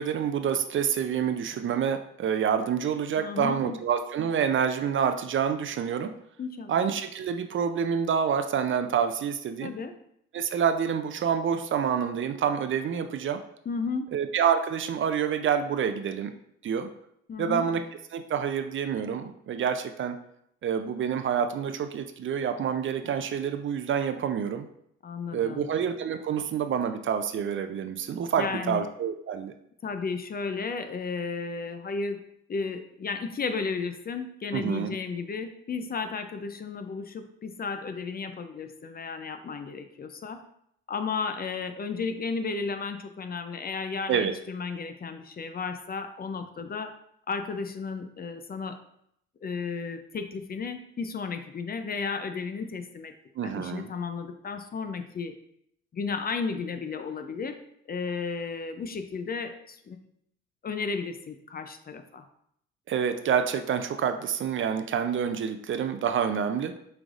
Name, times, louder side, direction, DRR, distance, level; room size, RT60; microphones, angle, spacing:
voice 1, 0.0-6.1 6.7-9.7 10.3-13.4 14.1-16.3 16.6-16.9 17.4-17.8 18.1-20.2 20.6-24.7 25.3-29.5 34.5-34.9 44.1-44.3 53.4-53.9 62.9-66.7, right 7 dB, 45° right, 8 dB, 0.5 m, -27 dB
voice 2, 3.2-3.8 6.4-6.7 9.6-9.9 13.7-14.1 17.3-17.7 25.0-25.7 28.4-28.9 29.8-32.2 32.5-40.4 40.9-47.0 47.3-48.8 49.4-53.1 53.4-55.3 55.9-57.6 57.9-60.0 60.6-62.3, left 4 dB, 30° left, 8 dB, 0.5 m, -33 dB
6.0 x 3.4 x 2.5 m, 0.73 s
supercardioid pair, 65°, 29 cm